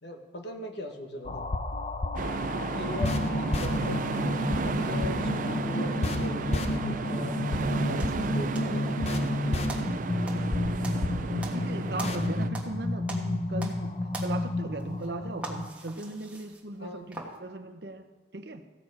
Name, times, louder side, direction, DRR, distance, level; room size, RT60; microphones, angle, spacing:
voice 1, 0.0-1.5 2.8-3.1 3.6-4.0 4.2-4.4 4.6-9.0 16.8-17.1, left 2 dB, 70° left, 3 dB, 1.3 m, -40 dB
sound 1, 1.2-15.7, left 2 dB, 35° left, 0.6 m, -30 dB
sound 2, 2.2-12.5, right 4 dB, 45° right, 0.3 m, -33 dB
voice 2, 2.7-3.8 11.3-18.0 18.3-18.7, right 2 dB, 60° right, 8 dB, 0.8 m, -38 dB
sound 3, 8.0-9.3 9.7-12.8 13.0-13.9 14.1-17.4, right 2 dB, 5° right, 1.4 m, -42 dB
15.5 x 6.7 x 4.8 m, 1.2 s
head